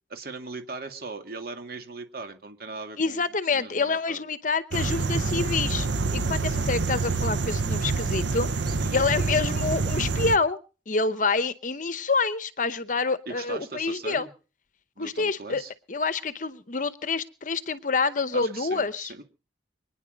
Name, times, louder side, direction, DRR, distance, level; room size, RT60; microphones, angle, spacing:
voice 1, 0.1-3.2 3.5-4.2 8.7-9.0 13.3-14.3 15.0-15.7 18.3-19.2, right 3 dB, 50° right, 6 dB, 2.2 m, -39 dB
voice 2, 3.0-5.9 6.1-8.5 8.9-10.6 10.9-14.3 15.0-15.6 15.9-19.1, left 4 dB, 45° left, 14 dB, 0.8 m, -27 dB
sound 1, 4.7-10.4, right 3 dB, 75° right, 0.9 m, -27 dB
25.0 x 10.0 x 5.1 m, 0.37 s
head